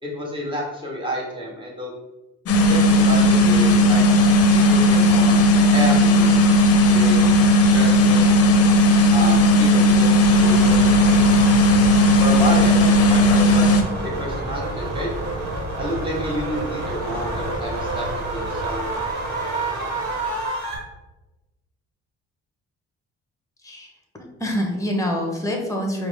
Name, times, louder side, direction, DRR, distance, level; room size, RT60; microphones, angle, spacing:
voice 1, 0.0-2.0 2.7-5.5 5.7-7.3 7.7-8.3 9.1-11.0 12.2-15.1 15.8-18.9, equal, 15° right, -3 dB, 1.3 m, -30 dB
sound 1, 2.5-13.8, left 1 dB, 50° left, 0.6 m, -15 dB
sound 2, 10.2-20.8, right 2 dB, 55° right, 1.2 m, -28 dB
voice 2, 24.4-26.1, equal, 10° left, 2 dB, 0.9 m, -25 dB
4.8 x 2.1 x 3.5 m, 1.0 s
cardioid pair, 90°, 30 cm